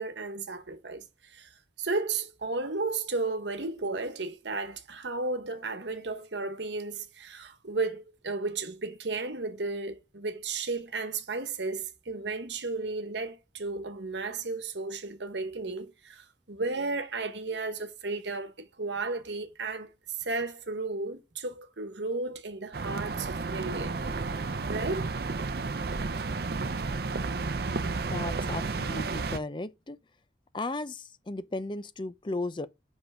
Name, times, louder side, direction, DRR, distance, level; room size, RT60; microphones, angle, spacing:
voice 1, 0.0-24.0 24.7-25.2, right 3 dB, 75° right, 1.2 m, -34 dB
sound 1, 22.7-29.4, right 3 dB, 55° right, 0.6 m, -32 dB
voice 2, 28.1-30.0 30.5-32.7, left 2 dB, 25° left, 0.5 m, -35 dB
5.6 x 5.5 x 4.8 m
head